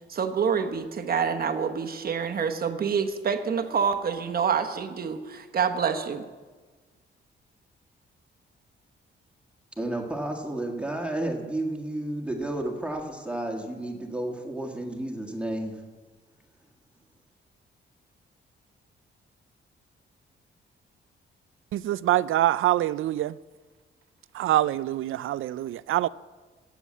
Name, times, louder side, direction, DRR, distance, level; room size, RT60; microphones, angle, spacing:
voice 1, 0.1-6.2, right 6 dB, 45° right, 1.2 m, -27 dB
voice 2, 9.8-15.7, right 1 dB, 5° right, 1.6 m, -31 dB
voice 3, 21.7-23.4 24.3-26.1, right 14 dB, 75° right, 0.4 m, -25 dB
16.5 x 7.3 x 7.4 m
cardioid pair, 130°, 21 cm